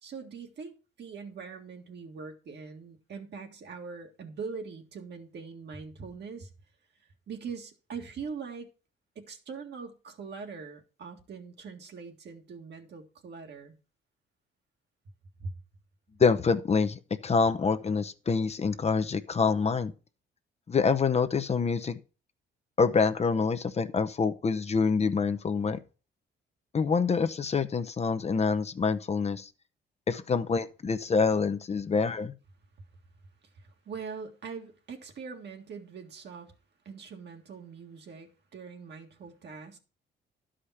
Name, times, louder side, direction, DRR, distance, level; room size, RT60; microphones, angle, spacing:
voice 1, 0.0-6.5 7.3-8.7 9.2-13.8 15.4-15.6 33.5-36.5 36.9-39.8, right 5 dB, 60° right, 1.8 m, -42 dB
voice 2, 16.2-19.9 20.7-22.0 22.8-25.8 26.7-29.5 30.1-32.3, left 5 dB, 35° left, 0.7 m, -26 dB
11.5 x 5.0 x 5.7 m
cardioid pair, 90°, 20 cm